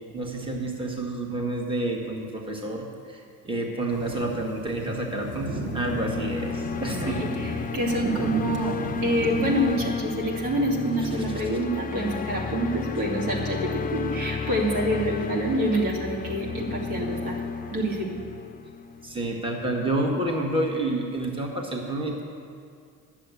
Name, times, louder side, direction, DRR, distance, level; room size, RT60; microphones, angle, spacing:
voice 1, 0.1-7.2 8.6-8.7 19.0-22.2, right 1 dB, 15° right, 0 dB, 1.5 m, -29 dB
sound 1, 3.9-9.9, right 3 dB, 35° right, 1.4 m, -35 dB
sound 2, 5.1-19.3, left 5 dB, 25° left, 0.5 m, -33 dB
voice 2, 6.8-17.4 17.7-18.2, right 1 dB, 80° right, -3 dB, 2.7 m, -27 dB
10.5 x 7.4 x 8.1 m, 2.3 s
cardioid pair, 105°, 34 cm